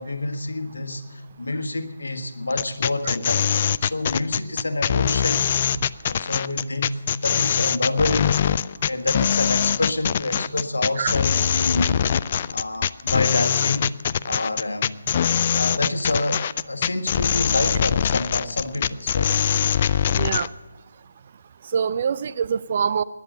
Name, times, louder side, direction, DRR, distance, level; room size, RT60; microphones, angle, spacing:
voice 1, 0.0-5.5 6.0-8.4 8.8-12.0 12.5-14.0 14.2-15.0 15.5-19.3, left 2 dB, 70° left, 7 dB, 1.6 m, -27 dB
sound 1, 2.5-20.5, left 8 dB, 35° left, 0.3 m, -22 dB
voice 2, 20.2-20.5 21.7-23.0, right 7 dB, 40° right, 14 dB, 0.5 m, -24 dB
19.0 x 11.0 x 5.2 m, 1.3 s
figure-of-eight pair, 145°, 0 cm